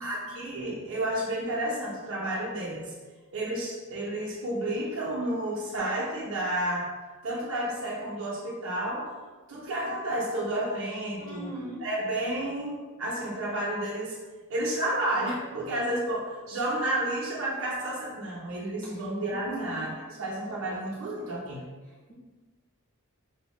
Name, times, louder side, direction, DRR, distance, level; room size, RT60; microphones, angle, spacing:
voice 1, 0.0-2.9 3.3-6.9 7.2-9.1 9.5-11.5 11.8-14.2 14.5-21.6, right 1 dB, 65° right, -7 dB, 0.6 m, -31 dB
voice 2, 11.2-11.8 18.8-19.0 19.3-19.9 21.8-22.1, equal, 25° left, -6 dB, 0.5 m, -42 dB
4.6 x 2.0 x 3.0 m, 1.3 s
head